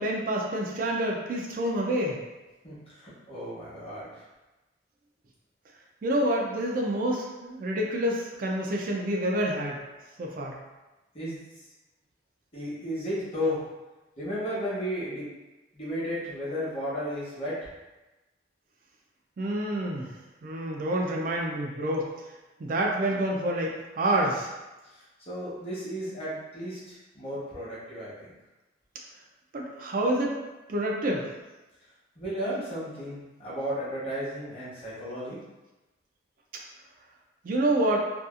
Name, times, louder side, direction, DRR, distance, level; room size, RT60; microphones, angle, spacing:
voice 1, 0.0-2.2 6.0-9.8 10.2-10.6 19.4-20.1 20.4-22.1 22.6-24.5 29.5-30.4 30.7-31.3 37.4-38.1, right 1 dB, 50° right, -1 dB, 0.3 m, -28 dB
voice 2, 2.6-4.2 11.1-11.4 12.5-13.6 14.2-15.3 15.7-17.7 25.3-28.3 32.2-35.4, equal, 35° left, -9 dB, 1.0 m, -34 dB
2.7 x 2.3 x 2.4 m, 1.1 s
head